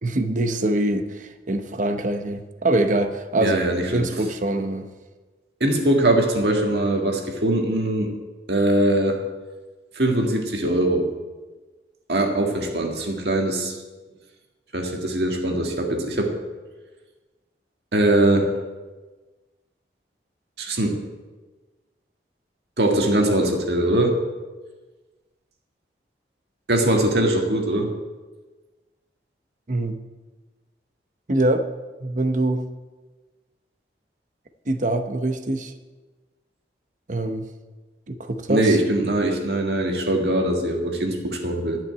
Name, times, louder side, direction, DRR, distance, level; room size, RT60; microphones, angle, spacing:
voice 1, 0.0-3.6 3.9-4.9 29.7-30.0 31.3-31.7 32.0-32.7 34.7-35.7 37.1-37.5 38.1-38.8, right 1 dB, 45° right, 8 dB, 0.8 m, -24 dB
voice 2, 3.4-4.1 5.6-8.1 8.5-9.2 9.9-11.1 12.1-13.7 14.7-16.3 17.9-18.5 20.6-21.0 22.8-24.2 26.7-27.9 38.5-41.8, right 1 dB, 65° right, 2 dB, 1.8 m, -21 dB
11.0 x 5.9 x 9.0 m, 1.3 s
head